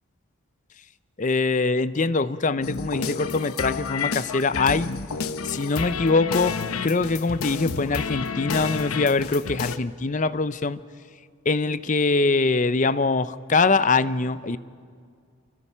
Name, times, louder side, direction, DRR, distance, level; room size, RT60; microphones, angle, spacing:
voice 1, 1.2-4.9 5.4-10.8 11.5-14.6, left 3 dB, 35° left, 15 dB, 0.6 m, -23 dB
sound 1, 2.6-9.8, left 5 dB, 80° left, 0.9 m, -30 dB
29.5 x 24.0 x 5.6 m, 2.1 s
head